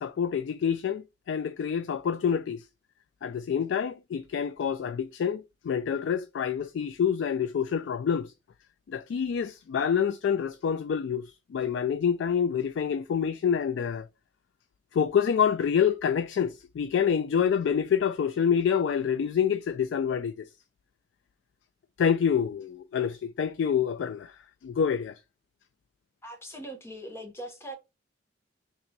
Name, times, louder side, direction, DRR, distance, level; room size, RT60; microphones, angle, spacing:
voice 1, 0.0-2.6 3.2-8.3 8.9-14.1 14.9-20.5 22.0-24.4 24.6-25.2, left 7 dB, 85° left, 0.3 m, -27 dB
voice 2, 26.2-27.7, right 1 dB, 15° left, 0.8 m, -41 dB
2.9 x 2.7 x 4.4 m
head